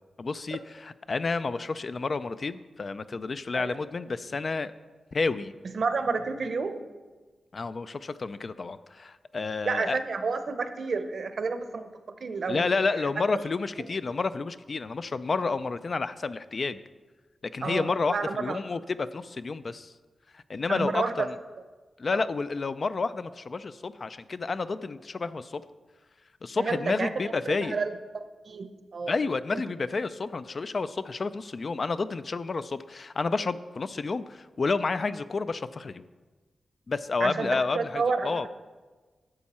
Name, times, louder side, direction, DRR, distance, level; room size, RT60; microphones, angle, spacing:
voice 1, 0.2-4.7 5.1-5.5 7.5-10.0 12.5-16.8 17.5-19.9 20.3-21.3 22.0-25.6 26.4-27.8 29.1-36.1 36.9-38.5, left 4 dB, 40° left, 13 dB, 0.3 m, -30 dB
voice 2, 5.7-6.9 9.6-11.9 12.2-12.6 17.6-18.6 20.7-21.3 22.1-22.3 26.6-27.1 27.5-27.9 28.5-29.1 29.5-29.6 37.2-38.5, right 4 dB, 55° right, 9 dB, 0.8 m, -30 dB
11.5 x 7.3 x 4.3 m, 1.3 s
wide cardioid pair, 140°, 0 cm